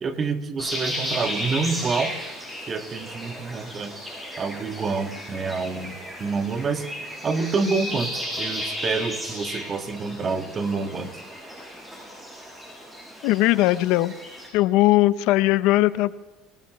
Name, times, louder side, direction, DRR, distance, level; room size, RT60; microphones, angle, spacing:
voice 1, 0.0-2.1 2.7-3.9 4.4-6.9 7.2-11.2, right 4 dB, 35° right, 6 dB, 1.8 m, -27 dB
sound 1, 0.6-14.5, equal, 15° right, 7.2 m, -34 dB
voice 2, 13.2-14.1 14.5-16.2, left 17 dB, 75° left, 16 dB, 0.6 m, -19 dB
25.5 x 18.5 x 3.1 m, 1.2 s
supercardioid pair, 95°, 0 cm